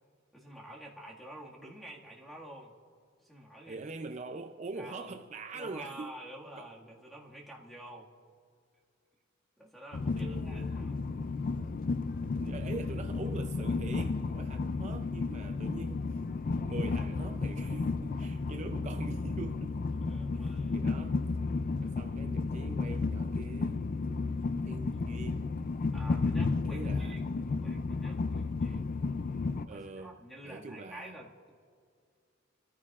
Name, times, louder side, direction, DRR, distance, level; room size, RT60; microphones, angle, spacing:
voice 1, 0.3-2.7 3.2-3.8 4.8-5.2 5.5-8.1 9.6-11.1 11.5-11.8 18.3-18.6 19.9-21.1 25.9-28.9 29.7-31.5, right 1 dB, ahead, 1.8 m, -49 dB
voice 2, 3.7-6.2 6.6-6.7 10.2-10.8 12.2-16.2 16.6-19.8 20.3-21.2 21.8-23.9 24.6-25.6 26.7-27.2 29.7-30.2 30.4-31.2, right 3 dB, 35° right, 0.5 m, -43 dB
Train, 9.9-29.7, left 3 dB, 45° left, 0.4 m, -33 dB
28.0 x 14.0 x 2.4 m
head